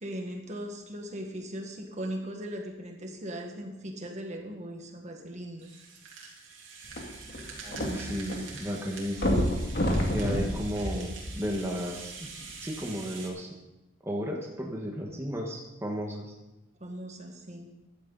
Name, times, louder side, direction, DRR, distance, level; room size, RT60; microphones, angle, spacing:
voice 1, 0.0-5.7 16.8-17.7, equal, 40° right, 3 dB, 1.7 m, -38 dB
Rattle (instrument), 5.6-13.3, right 4 dB, 85° right, 2.9 m, -45 dB
sound 1, 6.9-8.4 8.7-8.8 9.2-11.7 12.4-12.5, equal, 55° left, 2.3 m, -28 dB
voice 2, 7.6-9.4 10.1-12.3 12.6-13.5 14.0-16.3, equal, 15° right, -1 dB, 1.5 m, -34 dB
14.5 x 11.5 x 4.1 m, 0.94 s
head